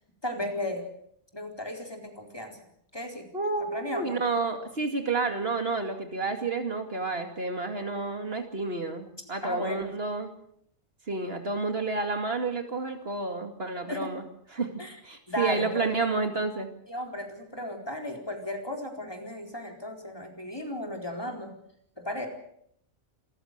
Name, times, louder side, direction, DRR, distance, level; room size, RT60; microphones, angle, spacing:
voice 1, 0.2-0.9 1.3-2.6 2.9-3.3 3.7-4.2 9.4-9.9 13.9-14.1 14.8-15.0 15.3-15.9 16.9-21.5 22.0-22.3, left 1 dB, 20° left, 3 dB, 4.2 m, -35 dB
voice 2, 3.3-10.3 11.1-14.2 14.5-14.7 15.0-16.7, right 3 dB, 60° right, 5 dB, 2.6 m, -30 dB
27.0 x 15.0 x 8.1 m, 0.71 s
omnidirectional pair, 1.2 m